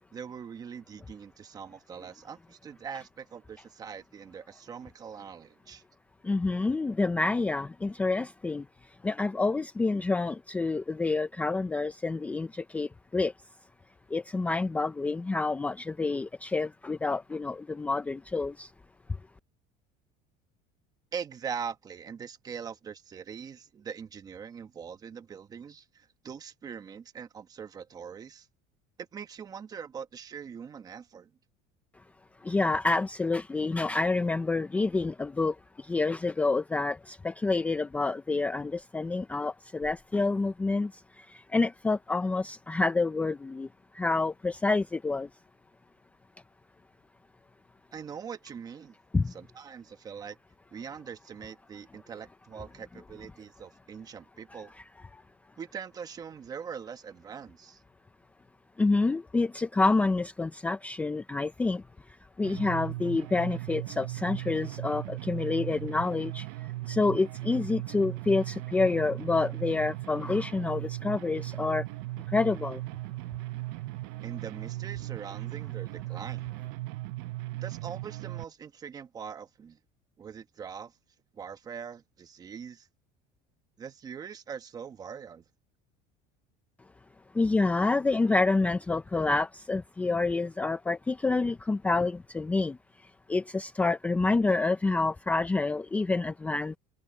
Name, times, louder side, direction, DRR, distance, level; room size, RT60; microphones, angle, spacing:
voice 1, 0.1-5.8 21.1-28.5 29.0-31.3 47.9-48.9 49.3-50.4 50.7-54.7 55.6-57.8 74.2-76.5 77.6-79.8 80.2-80.9 81.3-82.9 83.8-85.4, right 7 dB, 25° right, 1.2 m, -42 dB
voice 2, 6.2-8.6 9.0-13.3 14.1-18.7 32.4-43.7 43.9-45.3 49.1-49.3 54.5-54.6 55.1-55.2 58.8-61.8 62.4-66.5 66.9-71.8 72.3-72.8 87.3-92.8 93.3-96.8, left 3 dB, 10° left, 0.5 m, -28 dB
sound 1, 62.4-78.4, right 19 dB, 80° right, 0.7 m, -37 dB
cardioid pair, 155°, 16 cm